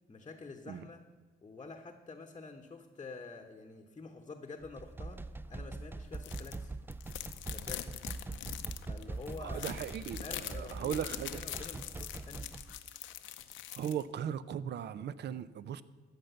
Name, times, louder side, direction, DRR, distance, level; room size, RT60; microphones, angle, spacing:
voice 1, 0.1-1.0 1.4-5.2 5.5-6.8 7.5-7.9 8.9-9.7 10.2-12.5, left 3 dB, 25° left, 3 dB, 0.9 m, -48 dB
sound 1, 4.6-12.8, right 3 dB, 10° right, 0.3 m, -43 dB
sound 2, 6.1-6.6 6.9-14.0, left 12 dB, 80° left, 0.7 m, -43 dB
voice 2, 9.4-11.4 13.8-15.8, right 9 dB, 60° right, 17 dB, 0.6 m, -38 dB
13.5 x 5.3 x 8.0 m, 1.3 s
cardioid pair, 90°, 20 cm